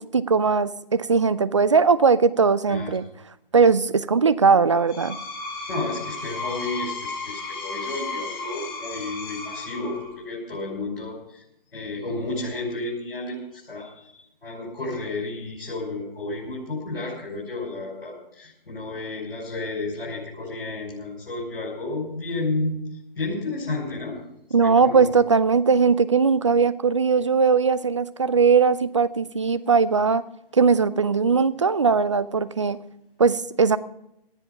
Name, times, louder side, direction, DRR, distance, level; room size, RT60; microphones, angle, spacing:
voice 1, 0.0-3.0 3.5-5.2 24.5-30.2 30.5-32.8 33.2-33.8, right 5 dB, 30° right, 16 dB, 0.5 m, -19 dB
Screech, 4.7-10.2, left 3 dB, 25° left, 2.8 m, -34 dB
voice 2, 5.7-11.4 11.7-22.7 23.1-24.2 24.6-25.1, left 2 dB, 75° left, -4 dB, 5.7 m, -32 dB
18.0 x 11.0 x 5.4 m, 0.80 s
figure-of-eight pair, 160°, 29 cm